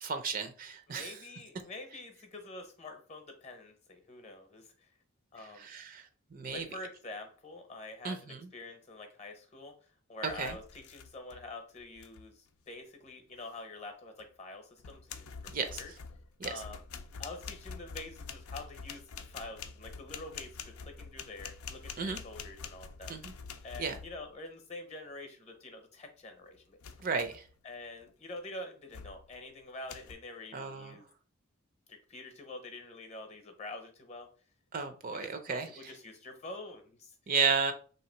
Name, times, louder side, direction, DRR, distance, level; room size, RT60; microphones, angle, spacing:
voice 1, 0.0-1.1 5.6-6.1 6.3-6.7 8.0-8.5 10.4-10.5 15.5-15.8 16.4-16.5 22.0-22.2 23.1-23.3 23.8-24.0 27.0-27.4 30.5-31.0 34.7-35.9 37.3-37.7, right 5 dB, 40° right, 7 dB, 0.4 m, -33 dB
voice 2, 0.9-4.9 5.3-5.7 6.5-9.7 10.1-15.3 15.6-15.9 16.4-16.8 17.2-27.1 27.6-31.1 31.9-34.3 35.1-37.1, left 2 dB, 30° left, 6 dB, 0.7 m, -46 dB
sound 1, 10.3-11.5 11.8-12.3 14.2-14.3 14.8-24.4 26.8-27.5 28.0-28.3 28.9-29.4 29.9-30.1, left 6 dB, 85° left, 0.5 m, -46 dB
3.3 x 2.9 x 4.3 m, 0.40 s
head